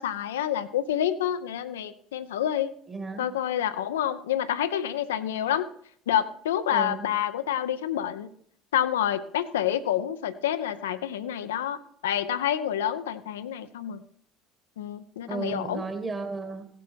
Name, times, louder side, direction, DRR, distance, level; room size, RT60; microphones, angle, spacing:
voice 1, 0.0-2.7 3.2-5.7 6.1-8.3 8.7-14.0 14.8-15.8, left 10 dB, 70° left, 11 dB, 0.4 m, -28 dB
voice 2, 2.9-3.3 6.7-7.1 15.3-16.6, right 3 dB, 25° right, 7 dB, 1.9 m, -34 dB
16.5 x 7.6 x 4.3 m, 0.66 s
figure-of-eight pair, 55°, 0 cm